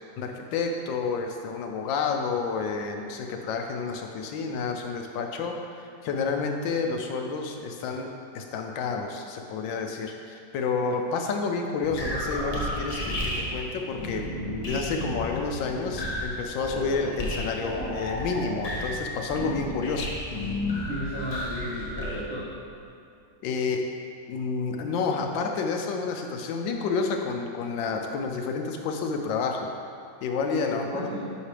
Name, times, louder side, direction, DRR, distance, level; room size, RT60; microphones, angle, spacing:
voice 1, 0.2-8.1 8.3-14.3 14.6-20.1 23.4-23.8 24.3-29.7 30.2-31.1, left 4 dB, 80° left, 3 dB, 1.3 m, -30 dB
sound 1, 11.8-22.2, left 1 dB, 35° left, 0.6 m, -32 dB
voice 2, 20.9-22.6 30.5-31.3, equal, 80° right, -10 dB, 1.9 m, -34 dB
8.1 x 5.8 x 3.3 m, 2.5 s
omnidirectional pair, 2.0 m